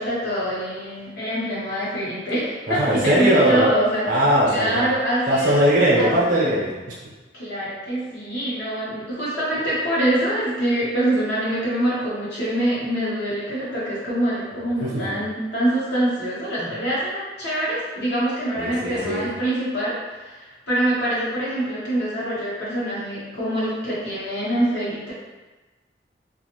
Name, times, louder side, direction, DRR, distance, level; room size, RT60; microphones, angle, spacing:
voice 1, 0.0-4.0 4.5-5.6 6.0-6.1 7.3-25.1, right 1 dB, 65° left, -8 dB, 1.1 m, -25 dB
voice 2, 2.7-3.7 4.1-4.9 5.3-7.0 14.8-15.1 16.6-16.7 18.6-19.2, right 1 dB, 45° right, -5 dB, 0.6 m, -20 dB
2.5 x 2.4 x 2.9 m, 1.2 s
head